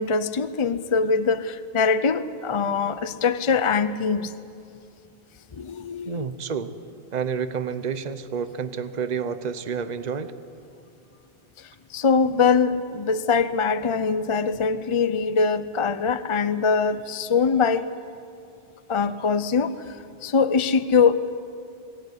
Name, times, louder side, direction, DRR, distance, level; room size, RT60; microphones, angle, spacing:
voice 1, 0.0-4.3 5.5-6.3 11.6-17.9 18.9-20.0 20.2-21.4, left 5 dB, 35° left, 12 dB, 0.6 m, -23 dB
voice 2, 6.0-6.7 7.1-10.3, right 6 dB, 45° right, 11 dB, 1.0 m, -29 dB
22.0 x 17.0 x 9.7 m, 2.5 s
omnidirectional pair, 1.0 m